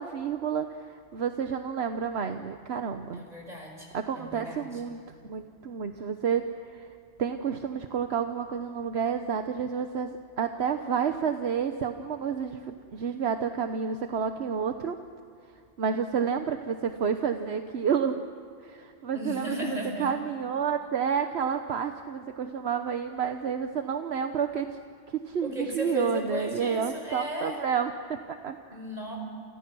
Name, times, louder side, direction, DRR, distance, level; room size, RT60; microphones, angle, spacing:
voice 1, 0.0-3.2 3.9-5.0 5.3-6.9 7.2-15.0 15.8-18.2 18.6-24.8 25.1-28.6, right 7 dB, 70° right, 7 dB, 1.2 m, -30 dB
voice 2, 3.1-4.8 19.1-20.2 25.4-27.6 28.7-29.2, left 1 dB, 35° right, 1 dB, 5.6 m, -35 dB
30.0 x 29.0 x 6.2 m, 2.3 s
omnidirectional pair, 1.1 m